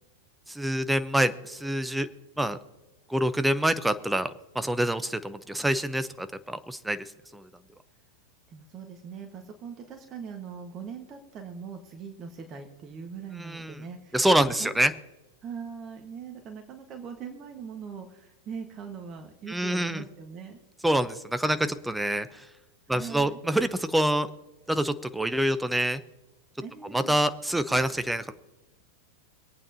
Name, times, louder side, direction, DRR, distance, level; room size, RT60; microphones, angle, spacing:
voice 1, 0.5-2.1 2.4-2.6 3.1-7.0 7.3-7.4 13.4-13.7 14.1-14.9 19.5-20.0 20.8-22.3 22.9-24.3 24.7-26.0 26.9-28.3, right 1 dB, 5° right, 12 dB, 0.8 m, -26 dB
voice 2, 8.5-15.0 15.4-20.6 22.9-23.4 26.6-27.2, right 6 dB, 30° right, 4 dB, 1.6 m, -41 dB
25.5 x 8.8 x 2.9 m, 1.0 s
figure-of-eight pair, 90°, 0 cm